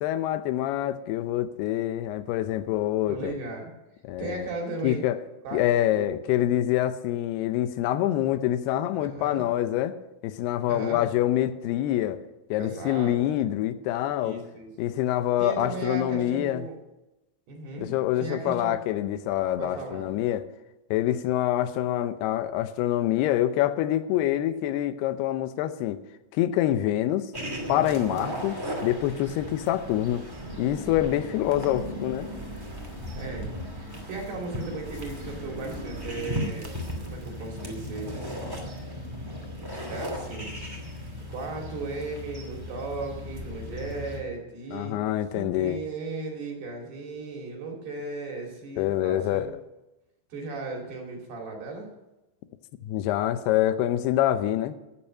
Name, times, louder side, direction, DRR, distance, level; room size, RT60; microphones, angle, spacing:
voice 1, 0.0-3.3 4.0-4.5 4.8-5.2 5.5-10.0 10.2-12.2 12.5-14.4 14.8-16.7 17.8-20.4 20.9-26.0 26.3-27.3 27.7-30.2 30.6-32.3 44.7-45.8 48.8-49.5 52.8-54.8, left 13 dB, 80° left, 2.7 m, -26 dB
voice 2, 3.1-3.7 4.2-5.0 5.4-5.6 5.9-6.1 9.0-9.5 10.7-11.0 12.6-13.4 14.2-14.9 15.4-16.8 17.5-18.8 19.6-20.2 33.1-36.7 37.1-38.2 39.9-40.5 41.3-45.0 45.3-49.5 50.3-51.9, right 3 dB, 70° right, 4.6 m, -36 dB
sound 1, 27.3-44.2, equal, 10° right, 1.2 m, -36 dB
13.5 x 8.9 x 6.5 m
omnidirectional pair, 4.8 m